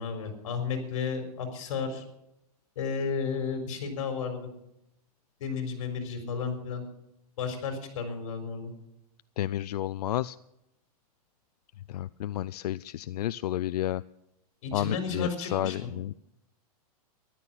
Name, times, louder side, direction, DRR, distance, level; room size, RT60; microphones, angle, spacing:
voice 1, 0.0-2.0 2.8-4.5 5.4-6.8 7.4-8.7 14.6-15.9, left 5 dB, 55° left, 6 dB, 4.3 m, -33 dB
voice 2, 9.4-10.4 11.9-14.0 14.7-16.1, left 12 dB, 85° left, 16 dB, 0.4 m, -31 dB
13.5 x 12.0 x 7.3 m, 0.84 s
supercardioid pair, 170°, 20 cm